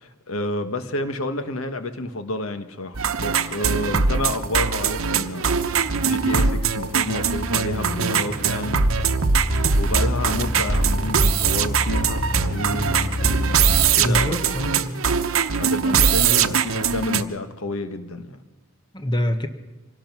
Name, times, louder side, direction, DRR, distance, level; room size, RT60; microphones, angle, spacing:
voice 1, 0.0-5.7 6.0-8.8 9.7-12.9 13.9-14.5 15.6-18.4, left 2 dB, 75° left, 9 dB, 1.4 m, -29 dB
sound 1, 2.9-17.2, right 5 dB, 70° right, 0.9 m, -22 dB
sound 2, 4.5-13.9, left 1 dB, 40° left, 2.3 m, -30 dB
voice 2, 14.0-15.2 18.9-19.5, equal, 20° left, 7 dB, 1.2 m, -25 dB
25.0 x 17.5 x 6.1 m, 1.1 s
head